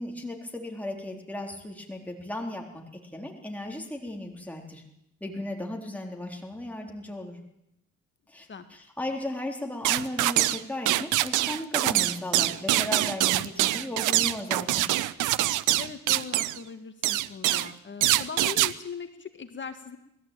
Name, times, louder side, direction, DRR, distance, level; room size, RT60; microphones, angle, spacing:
voice 1, 0.0-2.8 3.1-4.8 5.2-7.4 8.3-14.9, left 1 dB, 5° left, 1 dB, 3.7 m, -36 dB
sound 1, 9.8-10.6 10.9-16.6 17.0-17.7 18.0-18.7, right 15 dB, 90° right, 0.8 m, -24 dB
voice 2, 15.8-20.0, left 6 dB, 40° left, 8 dB, 1.8 m, -40 dB
20.5 x 14.0 x 9.1 m, 0.82 s
cardioid pair, 90°, 30 cm